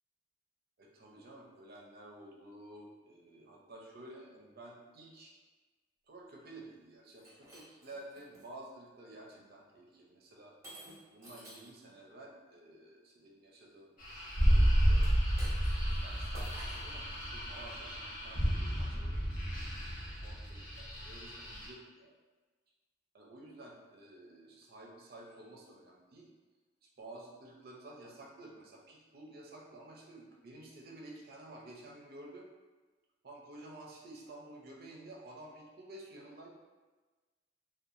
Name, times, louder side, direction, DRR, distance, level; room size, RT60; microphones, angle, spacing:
voice 1, 0.8-5.4 6.1-10.5 11.1-13.9 14.2-15.1 15.8-19.5 20.2-22.1 23.1-26.3 27.0-32.5 33.2-36.5, right 1 dB, 55° right, -1 dB, 0.5 m, -52 dB
Shatter, 7.1-8.5 9.1-9.4 10.6-11.8 14.9-16.0 16.3-17.0, equal, 15° right, 0.8 m, -52 dB
sound 1, 14.0-21.7, equal, 50° left, 0.8 m, -31 dB
2.7 x 2.2 x 2.5 m, 1.3 s
head